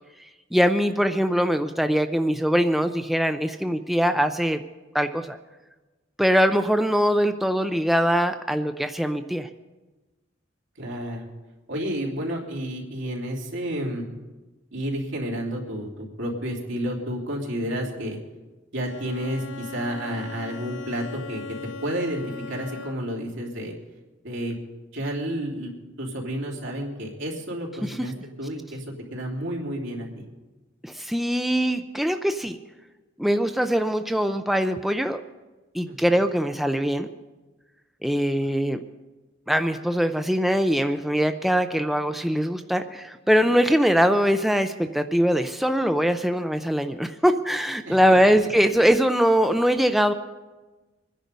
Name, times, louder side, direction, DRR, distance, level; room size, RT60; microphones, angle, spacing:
voice 1, 0.5-4.6 4.9-5.4 6.2-9.5 27.8-27.9 30.8-32.6 33.2-35.2 35.7-37.1 38.0-38.8 39.5-50.1, equal, ahead, 7 dB, 0.5 m, -22 dB
voice 2, 10.8-11.2 11.7-14.1 14.7-18.2 18.7-23.7 24.2-24.6 24.9-25.7 26.0-28.8 29.1-30.2 35.9-36.2 47.8-48.3, equal, 80° right, -1 dB, 3.3 m, -31 dB
Bowed string instrument, 18.8-23.3, left 5 dB, 70° left, 0.6 m, -39 dB
24.5 x 10.5 x 5.3 m, 1.2 s
head